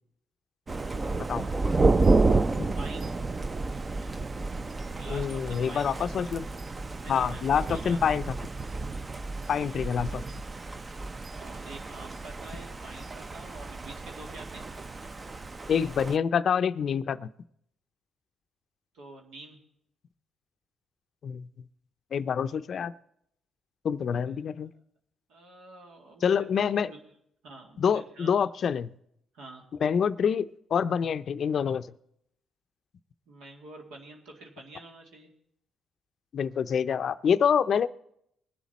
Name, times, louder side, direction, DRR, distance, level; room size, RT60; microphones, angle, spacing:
Thunder, 0.7-16.2, right 3 dB, 30° right, 0.5 m, -30 dB
voice 1, 2.8-3.2 5.0-6.3 7.0-8.0 9.6-9.9 11.3-14.6 18.9-19.6 24.1-24.2 25.3-26.5 26.9-27.0 27.4-28.3 29.3-29.6 33.3-35.3, right 2 dB, 85° right, 0 dB, 2.2 m, -47 dB
voice 2, 5.1-6.5 7.1-8.2 9.5-10.2 15.7-17.3 21.2-21.5 22.1-22.9 23.8-24.7 26.2-26.9 27.8-28.9 29.8-31.8 36.3-37.9, left 7 dB, 55° left, 14 dB, 0.5 m, -26 dB
21.5 x 7.3 x 4.2 m, 0.74 s
cardioid pair, 90°, 0 cm